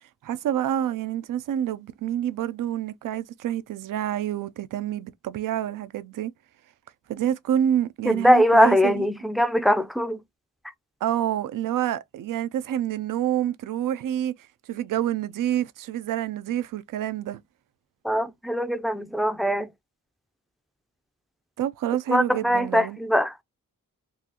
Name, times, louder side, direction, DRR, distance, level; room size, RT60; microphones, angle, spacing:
voice 1, 0.2-6.3 7.1-9.0 11.0-14.3 14.7-17.4 21.6-23.0, right 11 dB, 75° right, 0.5 m, -27 dB
voice 2, 8.1-10.2 18.0-19.7 22.1-23.4, equal, ahead, 0.4 m, -21 dB
3.8 x 2.4 x 2.8 m
cardioid pair, 75°, 33 cm